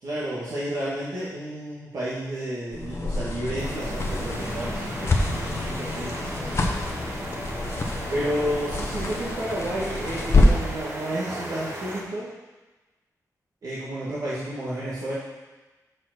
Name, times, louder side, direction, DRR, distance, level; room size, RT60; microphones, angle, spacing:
voice 1, 0.0-6.2 8.1-12.3 13.6-15.1, right 1 dB, 65° right, -9 dB, 1.7 m, -31 dB
sound 1, 2.7-10.8, left 2 dB, 40° left, 0.9 m, -26 dB
sound 2, 3.6-12.0, right 1 dB, 45° right, 1.3 m, -36 dB
7.5 x 4.7 x 6.1 m, 1.2 s
wide cardioid pair, 160°, 7 cm